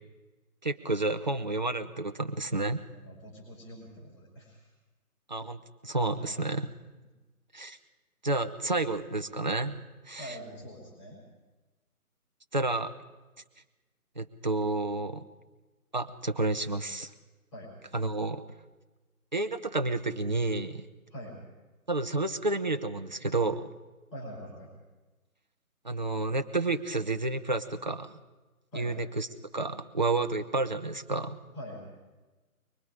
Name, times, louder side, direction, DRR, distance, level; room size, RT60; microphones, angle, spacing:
voice 1, 0.6-2.8 5.3-6.7 7.5-7.8 8.2-10.4 12.5-12.9 14.2-15.2 15.9-17.1 17.9-18.4 19.3-20.9 21.9-23.7 25.8-28.2 28.7-29.3 29.5-31.4, right 2 dB, 30° right, 7 dB, 0.8 m, -30 dB
voice 2, 2.9-4.7 6.1-6.4 10.1-11.2 17.5-17.7 21.1-21.4 24.1-24.7 28.7-28.9 31.5-31.8, equal, 20° left, -4 dB, 5.0 m, -44 dB
23.5 x 23.5 x 5.0 m, 1.2 s
figure-of-eight pair, 155°, 44 cm